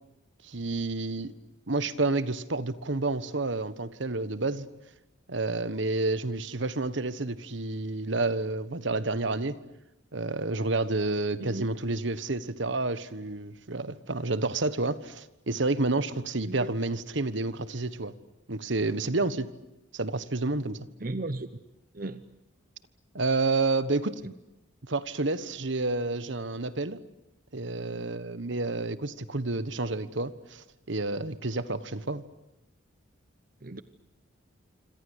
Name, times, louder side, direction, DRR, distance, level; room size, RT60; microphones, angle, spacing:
voice 1, 0.4-1.3 1.7-4.7 5.3-9.6 10.1-18.1 18.5-19.5 19.9-20.9 23.1-24.2 24.8-27.0 27.5-32.2, right 2 dB, 65° right, 1.3 m, -29 dB
voice 2, 21.0-21.5 22.0-22.2 33.6-33.8, right 2 dB, 45° right, 0.9 m, -34 dB
26.5 x 26.5 x 8.1 m
head